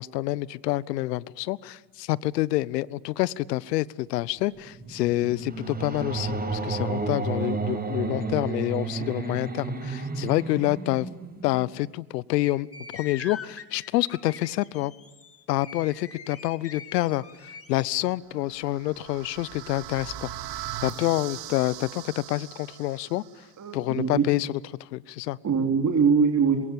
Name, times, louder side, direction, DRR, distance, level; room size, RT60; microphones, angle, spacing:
voice 1, 0.0-11.1 11.4-12.7 12.9-14.9 15.5-20.3 20.8-23.2 23.7-25.4, left 17 dB, 85° left, 22 dB, 0.9 m, -27 dB
sound 1, 4.5-11.8, right 3 dB, 20° right, 5.3 m, -32 dB
sound 2, 12.4-18.0, left 5 dB, 30° left, 3.6 m, -43 dB
sound 3, 18.3-23.4, right 12 dB, 65° right, 3.4 m, -39 dB
voice 2, 23.6-24.3 25.4-26.6, right 6 dB, 35° right, 4 dB, 3.4 m, -22 dB
27.5 x 22.5 x 8.7 m, 1.2 s
hypercardioid pair, 75°, 48 cm